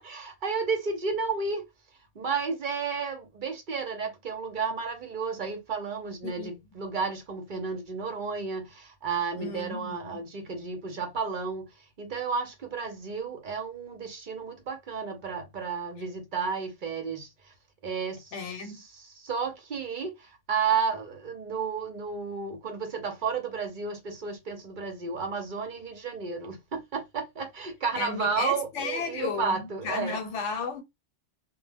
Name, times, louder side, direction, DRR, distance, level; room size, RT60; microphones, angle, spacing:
voice 1, 0.0-1.6 2.1-17.5 17.8-18.4 19.2-30.2, right 5 dB, 50° right, 0.7 m, -32 dB
voice 2, 9.4-10.2 18.3-18.8 28.0-30.8, left 5 dB, 80° left, 1.0 m, -34 dB
2.1 x 2.1 x 3.3 m
omnidirectional pair, 1.2 m